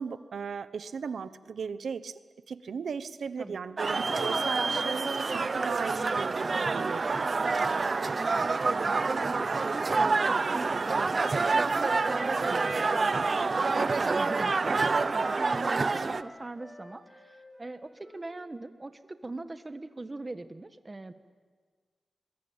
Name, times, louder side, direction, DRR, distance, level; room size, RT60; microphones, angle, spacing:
voice 1, 0.0-7.3 14.7-14.8, right 6 dB, 80° right, 13 dB, 1.0 m, -37 dB
sound 1, 3.8-16.2, right 4 dB, 45° right, 0.7 m, -27 dB
voice 2, 8.1-21.1, right 2 dB, 25° right, 10 dB, 1.3 m, -41 dB
Wind instrument woodwind instrument, 11.2-14.3 14.6-18.4, left 1 dB, 15° left, 3.6 m, -48 dB
25.5 x 21.5 x 8.9 m, 1.5 s
wide cardioid pair, 120°, 0 cm